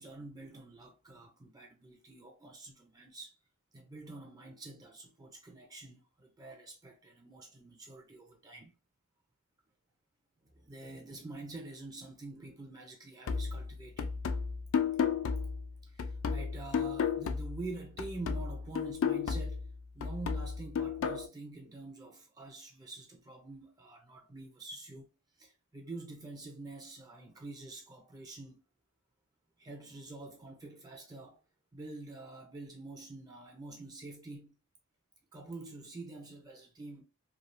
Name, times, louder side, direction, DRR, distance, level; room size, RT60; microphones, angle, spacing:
voice 1, 0.0-3.4 3.7-8.7 10.6-14.2 15.8-19.7 19.9-25.1 25.4-28.6 29.6-31.4 31.7-34.5 35.3-37.0, right 2 dB, 15° right, 0.4 m, -47 dB
sound 1, 13.3-17.7 18.0-21.3, left 6 dB, 65° left, 0.3 m, -33 dB
3.2 x 2.3 x 2.5 m
head